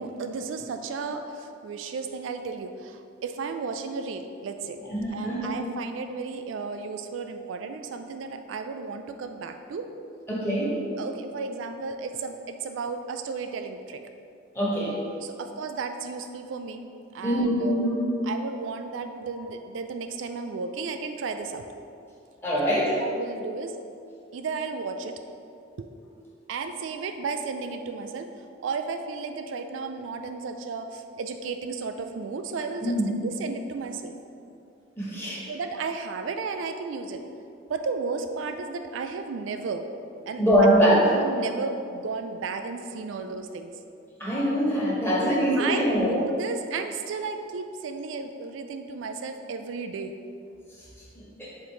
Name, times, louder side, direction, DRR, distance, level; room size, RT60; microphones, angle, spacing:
voice 1, 0.0-4.8 5.1-9.9 11.0-14.0 15.2-16.9 17.1-17.8 18.2-21.7 23.0-23.8 24.3-25.2 25.8-25.9 26.5-34.1 35.5-37.2 37.7-39.9 40.3-40.4 41.1-43.7 45.3-50.1, right 4 dB, 80° right, 7 dB, 0.4 m, -33 dB
voice 2, 4.9-5.6 10.3-10.7 14.5-14.9 17.2-18.0 22.4-22.9 32.8-33.1 35.0-35.4 40.4-41.1 44.2-46.1 51.1-51.5, equal, 10° left, -7 dB, 1.4 m, -23 dB
5.2 x 3.9 x 4.6 m, 2.5 s
head